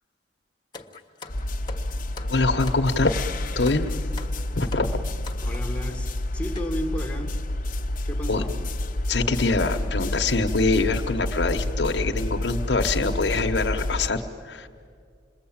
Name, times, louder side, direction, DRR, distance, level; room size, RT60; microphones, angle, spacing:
sound 1, 0.7-5.8 6.6-6.7 7.4-7.5 7.7-7.9 8.9-9.1 9.5-9.7 10.2-10.3 10.7-10.9 11.3-11.5, left 4 dB, 25° left, 1.4 m, -43 dB
sound 2, 1.3-14.1, left 1 dB, 50° left, 1.1 m, -29 dB
voice 1, 2.2-3.2 3.5-3.9 4.6-5.0 8.3-8.4 9.1-14.7, left 3 dB, 75° left, 4 dB, 1.1 m, -24 dB
voice 2, 5.4-6.1 6.3-7.4 8.1-8.6, equal, 10° left, 2 dB, 1.7 m, -33 dB
28.0 x 21.5 x 8.7 m, 2.2 s
head